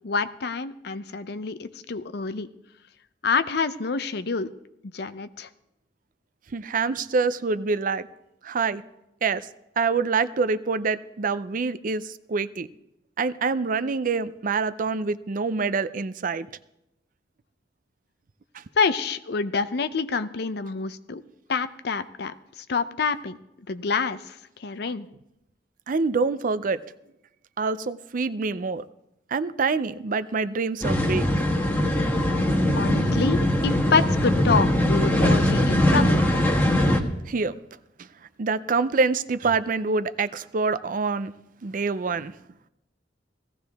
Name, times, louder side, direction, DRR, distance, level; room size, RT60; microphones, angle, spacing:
voice 1, 0.0-2.5 3.2-4.5 4.9-5.5 18.8-21.2 21.5-22.3 22.7-23.4 23.7-24.3 24.6-25.1 32.7-36.2, left 4 dB, 65° left, 12 dB, 0.6 m, -27 dB
voice 2, 6.5-8.1 8.4-8.8 9.2-9.5 9.8-12.7 13.2-16.5 25.9-26.8 27.6-28.8 29.3-31.3 37.3-37.6 38.4-41.3 41.6-42.3, right 4 dB, 50° right, 14 dB, 0.5 m, -26 dB
sound 1, 30.8-37.0, left 1 dB, 10° left, 1.4 m, -21 dB
17.0 x 15.0 x 3.5 m, 0.87 s
head